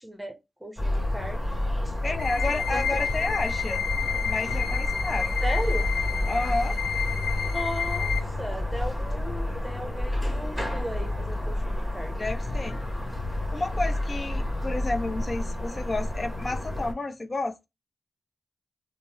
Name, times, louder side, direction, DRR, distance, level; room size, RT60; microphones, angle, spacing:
voice 1, 0.0-1.5 1.8-1.9 2.7-3.0 5.4-5.9 7.1-7.2 7.5-12.2, equal, 10° right, 0.9 m, -36 dB
sound 1, 0.8-16.9, left 1 dB, 10° left, 1.5 m, -29 dB
voice 2, 2.0-3.8 4.2-5.3 6.3-6.8 12.2-12.8 13.5-17.6, left 2 dB, 40° left, 0.6 m, -31 dB
sound 2, 2.2-8.2, left 8 dB, 85° left, 0.7 m, -31 dB
3.0 x 2.1 x 3.4 m
cardioid pair, 60°, 0 cm